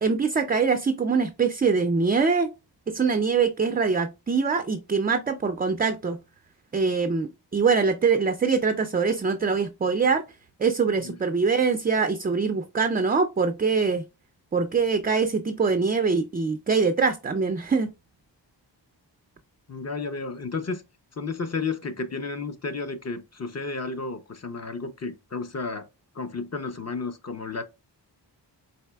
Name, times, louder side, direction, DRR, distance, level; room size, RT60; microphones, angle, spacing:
voice 1, 0.0-2.5 2.9-6.2 6.7-10.2 10.6-14.0 14.5-17.9, right 5 dB, 25° right, 0.3 m, -23 dB
voice 2, 19.7-20.8 21.2-25.9 26.1-27.6, left 4 dB, 35° left, 0.7 m, -32 dB
4.2 x 4.0 x 2.2 m
wide cardioid pair, 90°, 43 cm